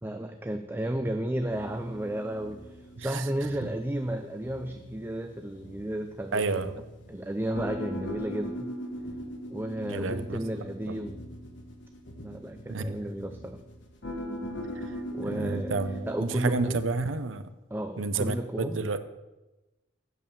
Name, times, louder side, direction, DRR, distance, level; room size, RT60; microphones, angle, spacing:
voice 1, 0.0-6.7 7.1-8.7 9.5-11.2 12.2-13.6 15.1-15.8 16.1-16.8 17.7-18.8, right 1 dB, 10° right, 6 dB, 0.5 m, -33 dB
sound 1, 1.5-16.8, equal, 65° left, 1.5 m, -40 dB
voice 2, 6.3-6.7 9.8-10.4 12.7-13.0 14.8-14.9 15.2-17.5 18.0-19.0, right 3 dB, 85° right, 11 dB, 0.7 m, -30 dB
8.4 x 7.1 x 6.9 m, 1.1 s
head